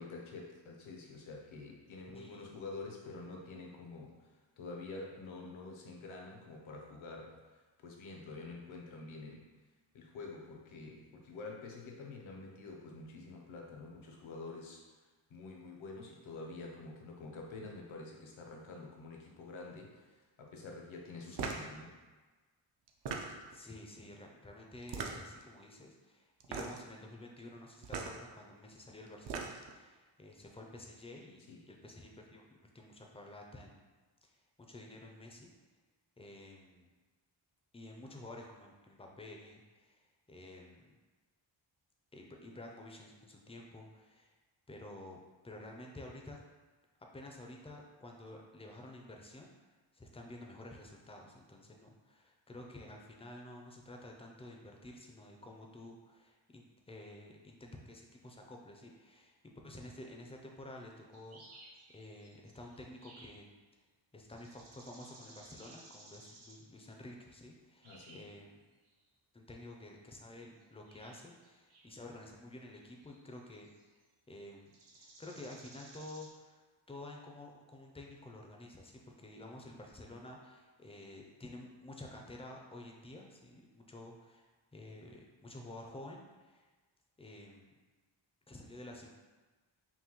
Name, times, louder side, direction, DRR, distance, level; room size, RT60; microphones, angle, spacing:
voice 1, 0.0-9.5 9.9-14.8 15.3-21.9 31.5-31.6 67.8-68.2, left 3 dB, 75° left, 0 dB, 0.8 m, -48 dB
voice 2, 2.1-2.6 21.3-21.5 23.2-33.9 34.2-35.5 36.2-36.9 37.7-41.0 42.1-44.3 44.7-45.2 45.4-46.4 47.1-49.5 49.9-59.4 59.6-63.5 64.1-68.6 69.3-73.7 74.3-86.7 87.2-87.7 88.5-89.1, left 1 dB, 15° left, 1 dB, 0.4 m, -51 dB
sound 1, 21.3-21.7 22.9-23.6 24.8-25.4 26.4-26.9 27.8-28.2 29.1-29.8, right 5 dB, 60° right, 0.6 m, -39 dB
sound 2, 61.1-63.5 64.2-66.8 67.8-68.4 68.8-69.0 70.6-72.1 72.7-74.1 74.7-76.3, right 2 dB, 85° right, 0.9 m, -58 dB
5.6 x 2.2 x 3.0 m, 1.3 s
wide cardioid pair, 125°, 48 cm